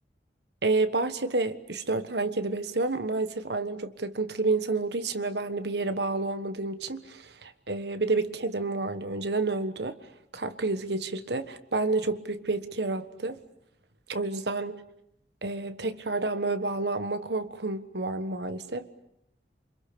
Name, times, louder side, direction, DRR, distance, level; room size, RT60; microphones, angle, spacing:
voice 1, 0.6-10.0 10.3-13.4 14.1-14.8 15.4-18.9, right 3 dB, 70° right, 1.4 m, -29 dB
28.0 x 26.0 x 7.0 m
head